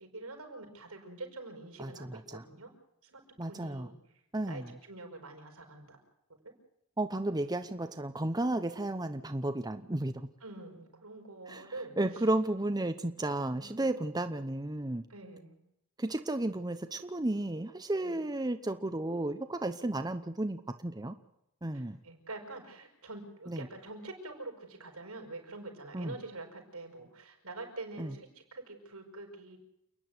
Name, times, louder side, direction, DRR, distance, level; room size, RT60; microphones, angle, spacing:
voice 1, 0.0-2.7 3.0-3.2 3.5-4.0 4.5-6.0 6.4-6.5 10.4-12.0 13.5-14.0 15.1-15.6 18.0-18.2 21.7-29.6, right 2 dB, 85° right, 4 dB, 6.0 m, -46 dB
voice 2, 1.8-2.4 3.4-3.9 4.3-4.7 7.0-10.3 11.5-15.0 16.0-21.1 21.6-22.0 23.5-23.7 25.9-26.1 28.0-28.1, right 1 dB, 20° right, 9 dB, 0.9 m, -33 dB
29.0 x 10.0 x 9.4 m, 0.80 s
head